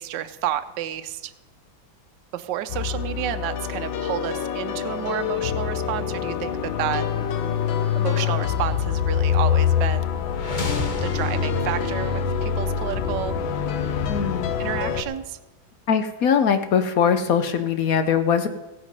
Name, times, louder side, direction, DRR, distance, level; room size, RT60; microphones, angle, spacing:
voice 1, 0.0-1.3 2.3-6.5 6.8-7.1 7.9-10.2 11.0-13.3 14.6-15.4, right 12 dB, 75° right, 9 dB, 1.2 m, -30 dB
sound 1, 2.7-15.0, left 7 dB, 90° left, 1.6 m, -25 dB
sound 2, 10.3-14.3, left 3 dB, 40° left, 0.7 m, -34 dB
voice 2, 14.1-14.5 15.9-18.5, left 7 dB, 65° left, 9 dB, 0.9 m, -21 dB
16.0 x 7.9 x 5.3 m, 1.0 s
omnidirectional pair, 2.1 m